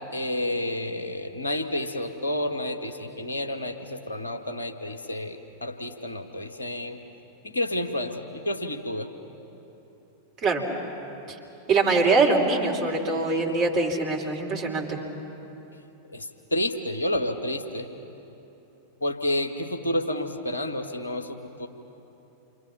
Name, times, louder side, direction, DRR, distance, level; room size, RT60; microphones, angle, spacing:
voice 1, 0.1-7.0 7.4-9.1 16.1-17.9 19.0-21.7, left 1 dB, 75° left, 5 dB, 1.5 m, -30 dB
voice 2, 11.7-15.0, right 3 dB, 35° right, 0 dB, 3.8 m, -23 dB
28.5 x 24.5 x 5.7 m, 3.0 s
figure-of-eight pair, 90°, 0 cm